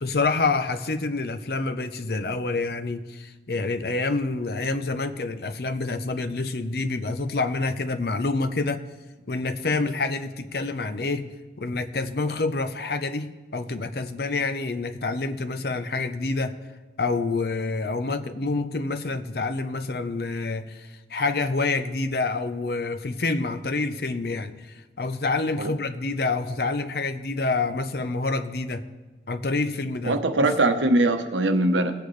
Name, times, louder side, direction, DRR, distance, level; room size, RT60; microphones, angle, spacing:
voice 1, 0.0-8.8 9.3-11.3 11.6-16.5 17.0-24.5 25.0-28.9 29.3-30.5, left 3 dB, 55° left, 9 dB, 0.6 m, -27 dB
voice 2, 30.0-31.9, right 2 dB, 90° right, 6 dB, 1.0 m, -21 dB
18.5 x 8.5 x 3.2 m, 1.2 s
head